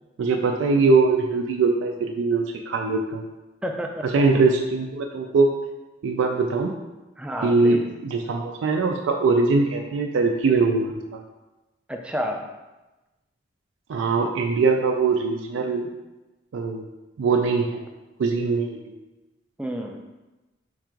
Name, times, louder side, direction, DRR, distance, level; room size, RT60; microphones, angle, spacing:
voice 1, 0.2-3.3 4.0-5.5 6.0-6.7 7.4-11.2 13.9-15.9 16.5-16.8 17.2-17.8 18.2-18.9, right 4 dB, 90° right, 3 dB, 0.4 m, -22 dB
voice 2, 3.6-4.2 7.2-7.9 11.9-12.4 19.6-20.0, equal, 5° right, 2 dB, 0.3 m, -30 dB
4.6 x 2.5 x 4.4 m, 1.1 s
head